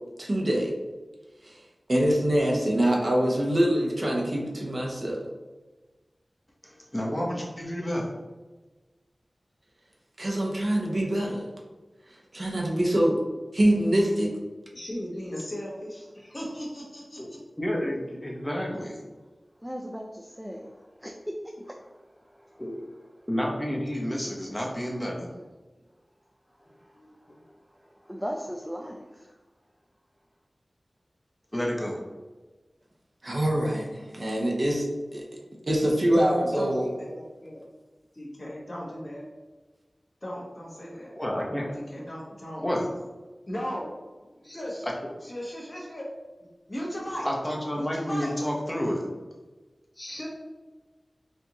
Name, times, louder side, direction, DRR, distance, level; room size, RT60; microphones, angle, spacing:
voice 1, 0.2-0.7 1.4-1.6 1.9-5.3 10.2-11.5 12.3-13.2 13.5-14.3 33.2-34.9 35.1-35.2 35.7-36.9, right 1 dB, 50° right, -2 dB, 0.7 m, -24 dB
voice 2, 6.6-8.1 17.2-17.3 17.6-19.0 22.6-22.7 23.3-25.3 27.0-27.1 31.5-32.0 41.1-41.8 42.6-42.9 47.2-49.0, equal, 15° left, -2 dB, 0.8 m, -30 dB
voice 3, 14.7-17.4 36.1-37.6 38.1-39.3 40.2-41.1 41.7-42.6 43.5-43.9 44.3-44.9 45.2-46.1 46.7-47.3 47.7-48.3 49.9-50.3, equal, 40° left, -4 dB, 1.2 m, -37 dB
voice 4, 19.6-23.3 26.5-29.4, equal, 5° right, 0 dB, 0.3 m, -40 dB
4.4 x 2.5 x 2.9 m, 1.2 s
wide cardioid pair, 55°, 0 cm